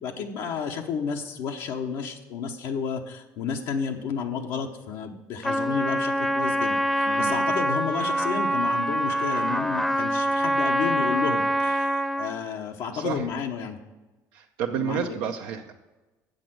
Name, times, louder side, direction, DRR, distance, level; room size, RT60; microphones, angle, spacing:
voice 1, 0.0-13.8 14.7-15.2, left 6 dB, 75° left, 2 dB, 0.9 m, -31 dB
Trumpet, 5.4-12.4, equal, ahead, 0.7 m, -25 dB
voice 2, 7.1-7.5 12.9-13.3 14.3-15.7, right 8 dB, 85° right, 1 dB, 0.7 m, -31 dB
7.7 x 6.5 x 7.7 m, 1.1 s
cardioid pair, 100°, 8 cm